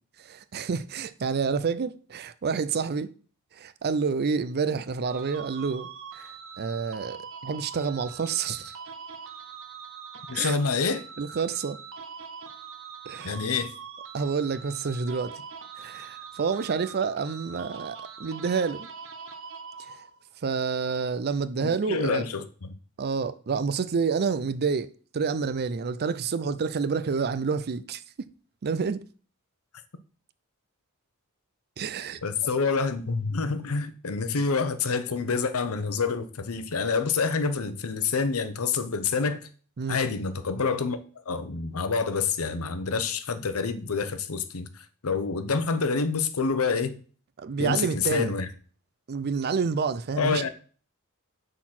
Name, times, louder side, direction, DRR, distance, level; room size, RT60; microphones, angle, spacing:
voice 1, 0.2-3.1 3.5-5.9 6.1-8.7 10.3-10.6 11.2-11.8 13.1-13.4 14.1-15.4 15.8-18.9 19.8-20.0 20.4-22.2 23.0-24.9 25.1-28.3 28.6-29.0 31.8-32.2 39.8-40.0 47.4-48.4 49.1-50.5, right 5 dB, 45° right, 0.5 m, -29 dB
sound 1, 5.1-20.3, right 6 dB, 65° right, 0.9 m, -43 dB
voice 2, 10.3-11.1 13.2-13.7 21.6-22.4 32.2-39.4 39.9-41.0 41.3-44.7 45.0-47.0 47.6-48.5 50.2-50.5, left 4 dB, 70° left, 0.7 m, -27 dB
6.4 x 4.0 x 6.0 m
head